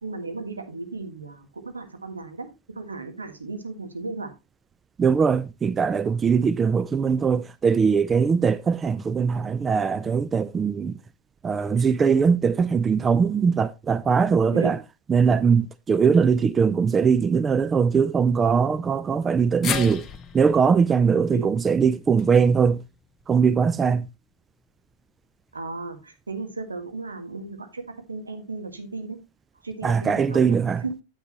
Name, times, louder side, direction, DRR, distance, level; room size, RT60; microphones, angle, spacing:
voice 1, 0.0-2.5 2.7-4.3 14.5-14.7 21.3-21.5 25.5-27.8 28.1-29.2 29.6-30.9, right 3 dB, 75° right, 1.6 m, -35 dB
voice 2, 5.0-10.9 11.4-14.8 15.1-20.0 20.3-22.8 23.3-24.1 29.8-30.8, right 6 dB, 20° right, 0.3 m, -21 dB
sound 1, 19.6-23.9 24.2-24.3 25.5-25.6, left 7 dB, 25° left, 0.9 m, -36 dB
9.3 x 8.3 x 2.9 m
figure-of-eight pair, 90°, 0 cm